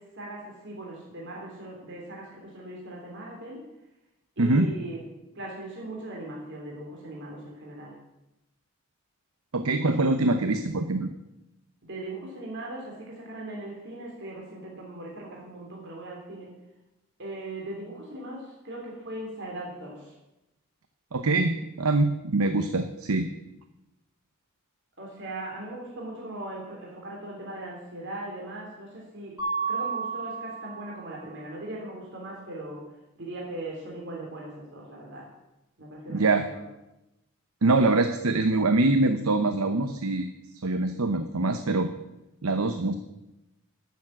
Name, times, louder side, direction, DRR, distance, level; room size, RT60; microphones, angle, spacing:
voice 1, 0.0-3.6 4.4-5.0 5.3-8.0 11.8-16.5 17.2-20.1 25.0-29.4 29.7-32.9 33.2-35.3 35.8-36.4, right 1 dB, 55° right, -2 dB, 3.2 m, -39 dB
voice 2, 4.4-4.7 9.5-11.1 21.1-23.3 36.1-36.5 37.6-40.3 40.6-41.9 42.4-43.0, right 2 dB, 80° right, 8 dB, 0.9 m, -24 dB
Mallet percussion, 29.4-31.2, right 5 dB, 15° right, 5.2 m, -32 dB
12.0 x 7.2 x 8.9 m, 0.93 s
head